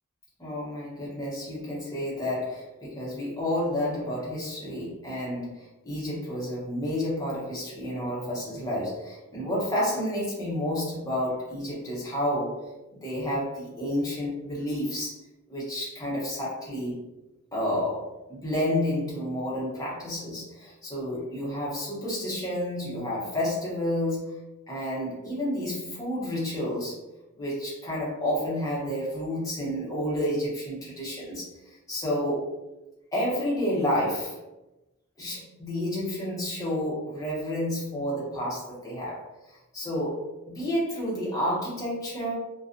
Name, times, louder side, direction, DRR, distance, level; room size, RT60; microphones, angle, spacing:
voice 1, 0.4-12.6 12.9-15.2 15.5-17.0 17.5-24.4 24.7-27.0 27.4-31.5 31.9-32.5 33.1-34.4 35.2-39.2 39.7-42.3, left 1 dB, 15° left, -7 dB, 0.8 m, -30 dB
2.4 x 2.3 x 2.5 m, 0.99 s
head